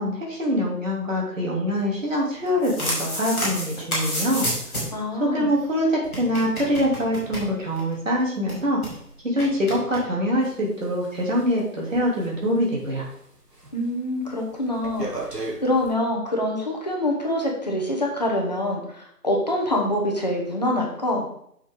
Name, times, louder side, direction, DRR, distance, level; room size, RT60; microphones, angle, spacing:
voice 1, 0.0-4.5 5.2-8.8 9.2-13.1, equal, 50° right, -3 dB, 3.2 m, -24 dB
sound 1, 2.4-5.0 5.3-5.4 5.6-5.7 6.0-7.9 8.2-8.3 8.5-8.9 9.4-10.0, equal, 5° left, 1.5 m, -30 dB
voice 2, 4.9-5.5 13.7-15.1 15.6-21.3, left 1 dB, 25° left, -1 dB, 1.2 m, -25 dB
sound 2, 10.4-13.2 13.5-13.9 14.2-15.9, right 2 dB, 80° right, 2.2 m, -36 dB
7.2 x 6.6 x 3.9 m, 0.70 s
figure-of-eight pair, 165°, 47 cm